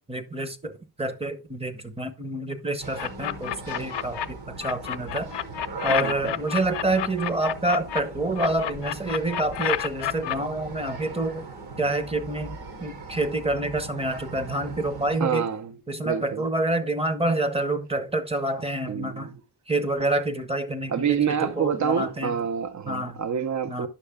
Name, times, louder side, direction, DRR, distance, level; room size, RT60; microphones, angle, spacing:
voice 1, 0.1-0.7 1.0-5.3 5.8-11.4 11.8-15.5 15.9-19.3 19.7-22.4 22.9-23.2 23.7-23.9, right 2 dB, 15° right, 0.9 m, -27 dB
sound 1, 2.8-15.2, right 3 dB, 60° right, 2.9 m, -40 dB
sound 2, 3.0-4.3 4.6-8.0 8.4-10.4, left 11 dB, 70° left, 0.7 m, -29 dB
voice 2, 5.8-6.3 15.2-15.7 16.0-16.5 18.9-19.3 20.9-23.9, right 7 dB, 45° right, 0.7 m, -27 dB
9.9 x 6.5 x 3.5 m
wide cardioid pair, 155°, 42 cm